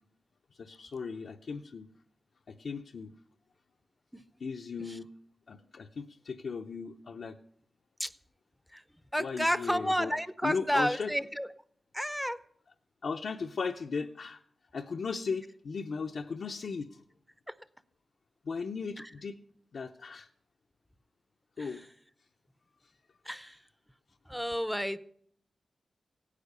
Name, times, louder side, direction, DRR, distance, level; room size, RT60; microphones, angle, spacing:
voice 1, 0.6-1.9 2.5-3.1 4.4-5.1 5.5-7.4 9.2-10.1 10.4-11.1 13.0-14.4 14.7-17.0 18.4-19.4 19.7-20.3 21.6-21.8, left 5 dB, 70° left, 2 dB, 0.6 m, -37 dB
voice 2, 9.1-11.5 11.9-12.4 21.6-21.8 23.3-23.6 24.3-25.0, equal, ahead, 14 dB, 0.6 m, -31 dB
17.0 x 9.9 x 6.7 m, 0.65 s
wide cardioid pair, 120°, 0 cm